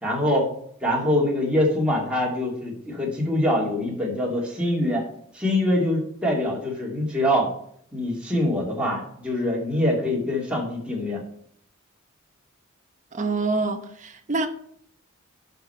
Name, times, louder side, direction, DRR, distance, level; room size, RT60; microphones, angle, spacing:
voice 1, 0.0-0.5 0.8-5.0 5.3-7.5 7.9-11.2, left 1 dB, 5° right, 2.4 m, -24 dB
voice 2, 13.1-14.5, right 3 dB, 35° right, 0.9 m, -26 dB
11.5 x 5.4 x 4.4 m
head